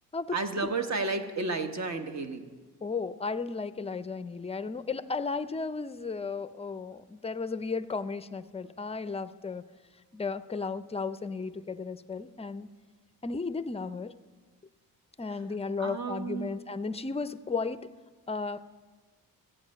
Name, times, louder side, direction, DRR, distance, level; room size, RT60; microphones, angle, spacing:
voice 1, 0.3-2.5 15.8-16.5, right 3 dB, 45° right, 7 dB, 1.2 m, -32 dB
voice 2, 2.8-9.6 10.1-12.7 13.2-14.1 15.2-17.9 18.3-18.8, left 4 dB, 15° left, 13 dB, 0.4 m, -34 dB
14.5 x 9.0 x 6.3 m, 1.4 s
cardioid pair, 100°, 37 cm